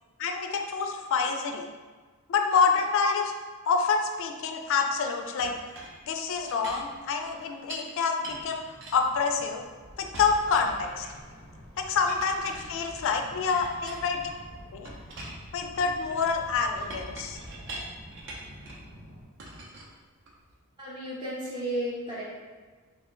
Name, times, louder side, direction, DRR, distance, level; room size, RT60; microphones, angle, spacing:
voice 1, 0.2-1.7 2.3-3.2 3.7-5.5 6.1-8.6 8.9-9.7 10.2-11.1 11.8-14.3 14.7-14.9 15.5-17.4, left 5 dB, 65° left, 4 dB, 0.4 m, -27 dB
Chink clink, 5.4-7.9 8.2-9.7 10.1-11.4 12.1-14.4 14.9-18.9 19.4-20.5, right 1 dB, 60° right, 0.6 m, -44 dB
sound 1, 8.2-19.2, equal, 85° right, 1.3 m, -48 dB
voice 2, 20.8-22.2, right 1 dB, 20° right, -7 dB, 0.7 m, -33 dB
3.3 x 2.1 x 3.7 m, 1.4 s
head